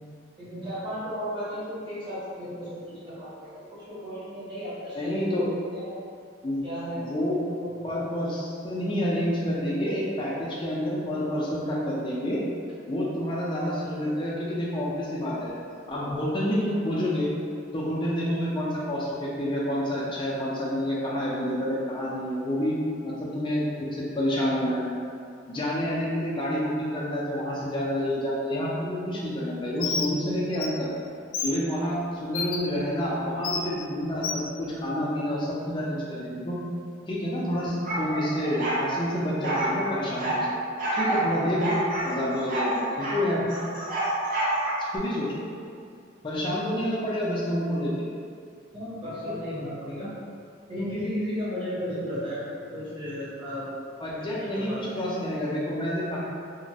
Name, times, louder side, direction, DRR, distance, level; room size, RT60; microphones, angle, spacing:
voice 1, 0.4-5.1 5.7-6.0 6.6-7.0 7.6-7.7 41.6-41.7 48.7-50.1 50.7-53.7 54.2-55.0, equal, 25° right, -11 dB, 0.9 m, -34 dB
voice 2, 5.0-5.5 6.4-6.6 7.0-7.4 7.8-12.4 12.9-15.5 15.9-17.3 17.7-24.8 25.5-30.9 31.4-36.6 37.1-40.4 40.9-41.8 42.0-43.4 44.8-45.4 46.2-48.1 49.3-49.4 54.0-56.2, equal, 25° left, -5 dB, 0.4 m, -28 dB
Bird, 29.8-30.1 30.5-30.7 31.3-31.5 32.3-32.6 33.4-33.6 34.2-34.4, left 5 dB, 90° left, 0.3 m, -29 dB
sound 1, 37.8-38.8 39.4-40.4 40.8-41.3 41.6-43.2 43.5-45.0, right 1 dB, 45° right, 0.5 m, -28 dB
3.0 x 2.1 x 2.7 m, 2.3 s
head